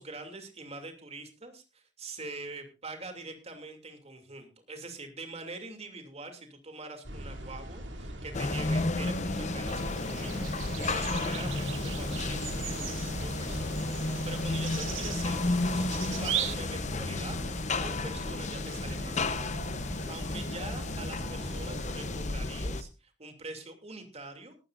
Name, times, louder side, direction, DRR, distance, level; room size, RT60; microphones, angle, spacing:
voice 1, 0.0-15.9 16.2-17.4 17.8-19.5 20.1-24.5, right 2 dB, 35° right, 6 dB, 2.8 m, -44 dB
sound 1, 7.0-22.2, equal, 70° right, 3.0 m, -41 dB
sound 2, 8.3-22.8, left 2 dB, 40° left, 0.8 m, -33 dB
sound 3, 9.7-16.5, right 11 dB, 90° right, 0.9 m, -39 dB
18.0 x 13.0 x 2.6 m, 0.30 s
head